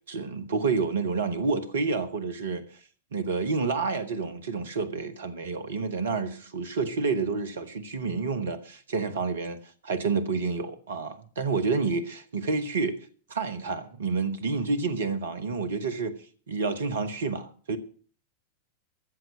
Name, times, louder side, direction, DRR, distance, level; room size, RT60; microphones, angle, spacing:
voice 1, 0.1-2.6 3.1-13.0 13.3-16.2 16.5-17.8, right 4 dB, 65° right, 1.4 m, -29 dB
14.0 x 7.7 x 7.6 m
figure-of-eight pair, 90°, 0 cm